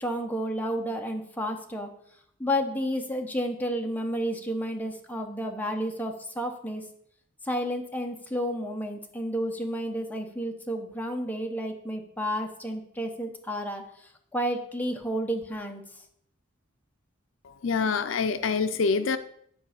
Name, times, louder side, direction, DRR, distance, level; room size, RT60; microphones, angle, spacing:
voice 1, 0.0-1.9 2.4-6.8 7.4-15.8, equal, 10° left, 3 dB, 1.0 m, -31 dB
voice 2, 17.4-19.2, left 5 dB, 70° left, 10 dB, 0.5 m, -26 dB
9.6 x 4.7 x 6.7 m, 0.68 s
head